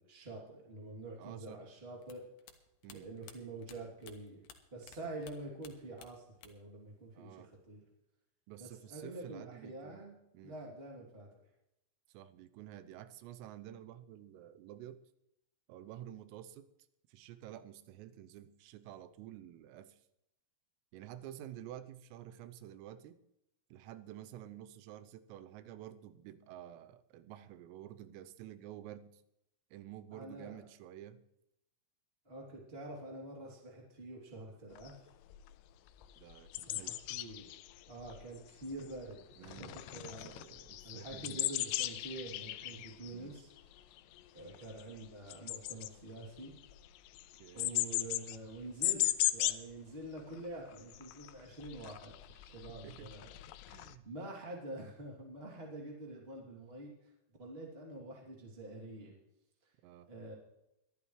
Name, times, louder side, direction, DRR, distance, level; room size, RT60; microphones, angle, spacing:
voice 1, 0.0-2.2 3.0-4.4 4.7-7.8 8.6-11.3 30.1-30.6 32.2-34.9 36.6-37.5 37.9-40.3 40.8-43.5 44.3-46.5 47.5-52.2 52.4-53.3 54.0-57.1 57.4-59.1 59.6-59.7 60.1-60.3, right 2 dB, 20° right, -2 dB, 1.5 m, -47 dB
voice 2, 1.2-1.6 2.8-3.1 5.0-5.1 7.1-7.5 8.5-10.1 10.3-10.6 12.1-15.0 15.7-16.7 17.1-20.0 20.9-23.2 23.7-29.2 29.7-31.2 36.2-37.0 39.4-39.8 40.2-41.6 42.6-43.4 47.4-47.7 52.7-53.1 53.7-54.1 59.8-60.1, right 12 dB, 85° right, 11 dB, 3.4 m, -50 dB
sound 1, 2.0-5.0 5.2-6.8 7.0-7.8, left 9 dB, 70° left, 2.9 m, -56 dB
sound 2, 34.8-34.9 35.3-35.5 35.9-39.2 39.4-49.7 50.0-50.2 50.4-54.0, left 16 dB, 85° left, 3.3 m, -38 dB
22.0 x 12.5 x 3.2 m, 0.84 s
omnidirectional pair, 5.9 m